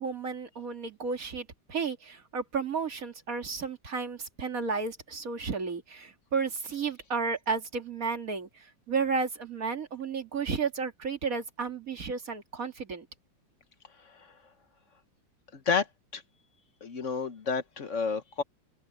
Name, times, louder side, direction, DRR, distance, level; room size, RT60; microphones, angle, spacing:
voice 1, 0.0-13.1, right 5 dB, 45° right, 2.6 m, -33 dB
voice 2, 15.5-15.9 16.1-16.2 16.8-18.4, left 5 dB, 45° left, 1.3 m, -30 dB
open air
omnidirectional pair, 2.1 m